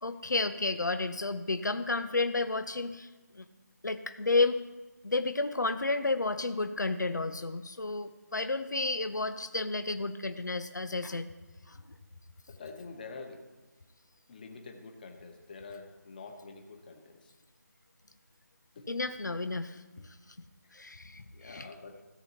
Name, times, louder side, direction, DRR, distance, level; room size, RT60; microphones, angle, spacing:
voice 1, 0.0-3.5 3.8-4.6 5.0-11.3 11.7-11.8 18.9-20.2 20.7-21.7, left 3 dB, 85° left, 9 dB, 0.8 m, -31 dB
voice 2, 12.5-13.4 14.3-17.3 18.7-18.8 21.3-22.0, left 4 dB, 30° left, 3 dB, 1.3 m, -46 dB
17.0 x 8.3 x 2.8 m, 1.2 s
figure-of-eight pair, 165°, 10 cm